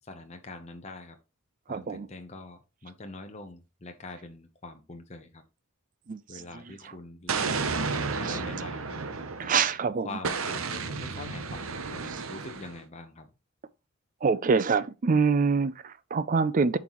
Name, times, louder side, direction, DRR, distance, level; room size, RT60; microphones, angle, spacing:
voice 1, 0.0-1.2 1.7-5.4 6.3-7.9 8.1-9.1 10.0-13.3, left 2 dB, 30° left, 0.8 m, -44 dB
voice 2, 1.7-2.1 6.1-6.2 8.3-8.4 9.4-10.1 14.2-16.8, right 5 dB, 40° right, 0.4 m, -25 dB
Explosion, 7.3-9.7 10.2-12.8, right 4 dB, 70° right, 0.8 m, -32 dB
11.0 x 3.9 x 3.0 m
head